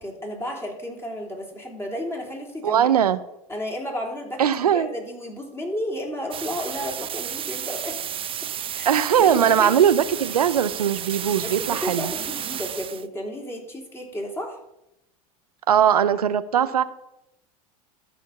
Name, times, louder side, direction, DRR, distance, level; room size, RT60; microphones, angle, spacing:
voice 1, 0.0-2.9 3.5-8.0 8.7-8.9 9.2-9.7 11.4-14.6, equal, 15° left, 0 dB, 3.3 m, -32 dB
voice 2, 2.6-3.2 4.4-4.9 8.9-12.1 15.7-16.8, right 9 dB, 90° right, 13 dB, 0.5 m, -20 dB
sound 1, 6.3-13.1, right 9 dB, 30° right, 0.6 m, -32 dB
12.5 x 4.5 x 7.0 m, 0.85 s
hypercardioid pair, 85°, 19 cm